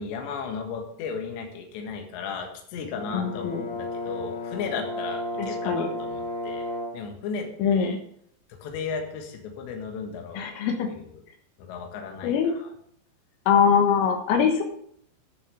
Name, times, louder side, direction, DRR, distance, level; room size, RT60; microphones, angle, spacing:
voice 1, 0.0-8.0 8.6-10.5 10.9-11.0 11.6-12.7, left 5 dB, 70° left, 3 dB, 3.6 m, -35 dB
Brass instrument, 2.9-7.1, left 2 dB, 35° left, 2.8 m, -33 dB
voice 2, 3.1-3.6 5.4-5.9 7.6-8.0 10.4-10.9 12.2-12.5 13.5-14.6, left 7 dB, 85° left, 3 dB, 4.0 m, -22 dB
10.5 x 6.9 x 6.8 m, 0.66 s
omnidirectional pair, 5.7 m